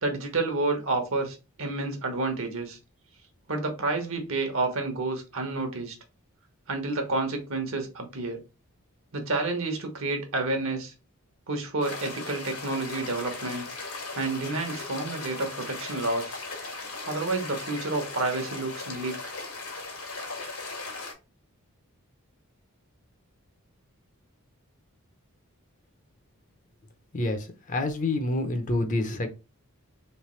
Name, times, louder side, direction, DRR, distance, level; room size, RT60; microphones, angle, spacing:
voice 1, 0.0-2.8 3.5-5.9 6.7-8.4 9.1-10.9 11.5-13.7 14.1-16.4 17.0-19.3, right 3 dB, 65° right, 1.1 m, -29 dB
sound 1, 11.8-21.1, left 3 dB, 80° left, 1.4 m, -38 dB
voice 2, 27.1-29.3, left 2 dB, 35° left, 0.6 m, -28 dB
3.3 x 3.1 x 3.1 m
head